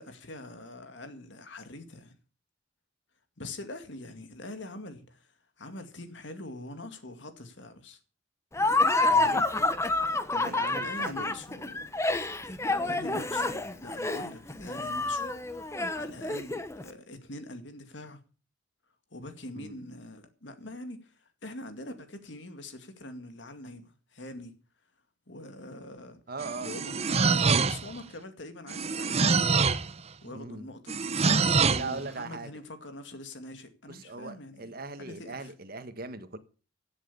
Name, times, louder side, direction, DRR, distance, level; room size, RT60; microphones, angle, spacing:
voice 1, 0.0-2.2 3.4-8.0 10.3-11.9 12.8-18.2 19.1-24.5 25.3-26.2 26.6-29.5 30.2-31.0 31.7-35.5, left 1 dB, 65° left, 2.2 m, -44 dB
Laughter, 8.5-16.8, left 2 dB, 15° left, 1.0 m, -28 dB
voice 2, 9.1-9.5 10.4-11.3 19.5-19.8 26.3-26.7 30.2-30.7 31.7-32.5 33.9-36.4, right 3 dB, 50° right, 1.5 m, -39 dB
sound 1, 26.4-28.0 28.7-29.9 30.9-31.9, right 4 dB, 35° right, 0.7 m, -25 dB
15.5 x 7.9 x 6.9 m
head